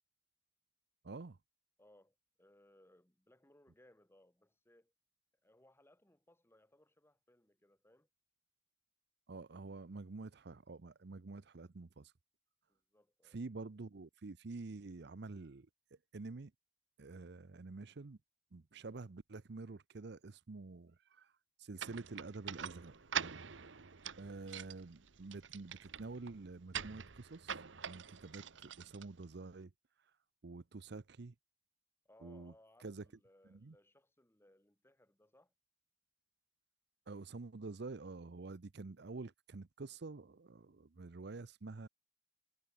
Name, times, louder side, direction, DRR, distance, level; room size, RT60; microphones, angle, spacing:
voice 1, 1.0-1.4 9.3-12.1 13.2-16.5 17.0-18.2 18.5-21.3 21.6-22.9 24.2-29.7 30.0-30.1 30.4-31.3 32.2-32.5 32.8-33.1 33.5-33.8 37.1-41.9, right 3 dB, 65° right, 0.7 m, -48 dB
voice 2, 1.8-4.9 5.4-8.1 12.7-13.4 32.0-35.5, left 1 dB, 15° left, 2.4 m, -67 dB
sound 1, 21.8-29.6, right 8 dB, 90° right, 1.1 m, -45 dB
head